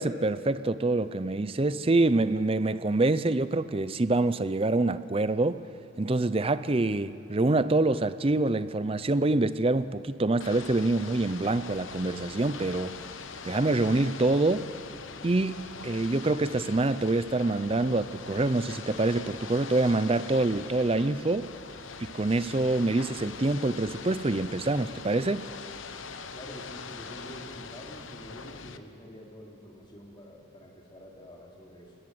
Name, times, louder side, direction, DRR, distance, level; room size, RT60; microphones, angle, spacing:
voice 1, 0.0-5.6 6.0-13.0 13.4-14.7 15.2-21.5 22.0-25.5, right 2 dB, 30° right, 0.5 m, -26 dB
Ocean / Boat Water vehicle, 10.4-28.8, left 5 dB, 75° left, 1.0 m, -42 dB
voice 2, 26.3-31.9, equal, 25° left, 3.1 m, -47 dB
21.0 x 19.0 x 7.8 m
head